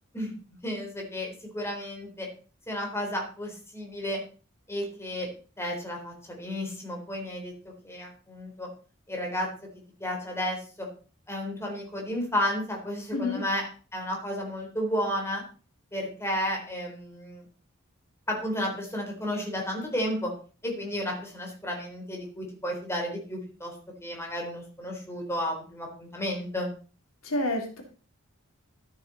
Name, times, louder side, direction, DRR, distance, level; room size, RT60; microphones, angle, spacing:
voice 1, 0.6-2.3 2.7-4.2 4.7-5.3 5.6-8.7 9.1-9.5 10.0-10.9 11.3-13.7 13.9-15.4 15.9-17.5 18.3-20.3 20.6-23.7 24.0-26.7, equal, 10° left, 0 dB, 3.9 m, -32 dB
voice 2, 13.1-13.4 27.2-27.8, left 2 dB, 80° left, 2 dB, 3.2 m, -28 dB
13.5 x 9.5 x 4.2 m, 0.37 s
head